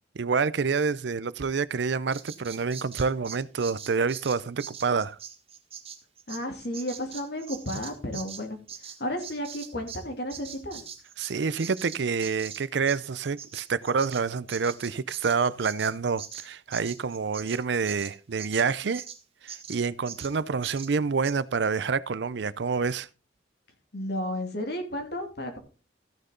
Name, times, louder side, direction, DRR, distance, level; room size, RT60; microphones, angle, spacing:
voice 1, 0.2-5.2 11.2-19.0 19.4-23.1, right 5 dB, 70° right, 0.5 m, -27 dB
Bird vocalization bird call bird song, 2.1-10.0 10.3-19.2 19.5-19.8 20.1-20.3 20.6-20.9 21.2-21.4, right 8 dB, 35° right, 1.4 m, -42 dB
voice 2, 6.3-8.6 9.0-10.8 23.9-25.6, left 1 dB, 60° left, 2.7 m, -33 dB
15.0 x 6.6 x 3.8 m
head